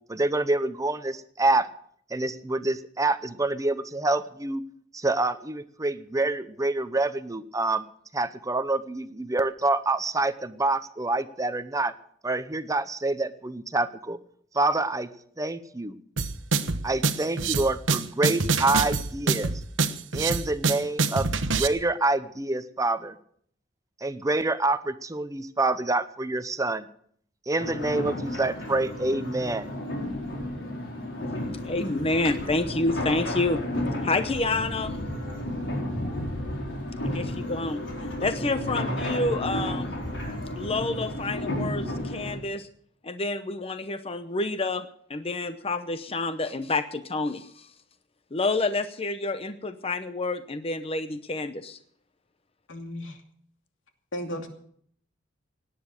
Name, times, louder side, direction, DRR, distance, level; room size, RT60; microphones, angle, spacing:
voice 1, 0.1-1.7 2.1-4.6 4.9-7.8 8.1-11.9 12.2-14.2 14.5-15.1 15.4-16.0 16.8-19.5 20.1-23.2 24.0-26.9 27.5-29.7, right 2 dB, 20° right, 12 dB, 0.7 m, -27 dB
sound 1, 16.2-21.7, right 4 dB, 80° right, 1.0 m, -25 dB
sound 2, 27.6-42.4, left 1 dB, 70° left, 4.3 m, -32 dB
voice 2, 31.6-33.6 34.0-35.0 37.0-37.8 38.2-40.0 40.5-42.7 43.0-47.7 48.3-51.8, left 2 dB, 30° left, 10 dB, 0.8 m, -28 dB
voice 3, 52.7-53.2 54.1-54.5, equal, 90° left, 4 dB, 2.6 m, -34 dB
17.5 x 10.5 x 6.5 m, 0.62 s
head